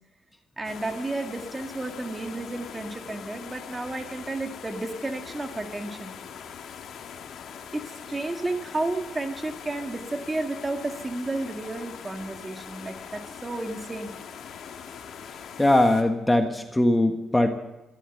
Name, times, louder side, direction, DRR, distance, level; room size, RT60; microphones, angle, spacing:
sound 1, 0.6-16.0, left 7 dB, 70° left, 2.1 m, -42 dB
voice 1, 0.6-6.1 7.7-14.1, right 2 dB, 20° right, 5 dB, 2.0 m, -32 dB
voice 2, 15.6-17.5, left 1 dB, 10° left, 5 dB, 1.4 m, -21 dB
15.5 x 12.5 x 7.0 m, 1.0 s
cardioid pair, 90°, 0 cm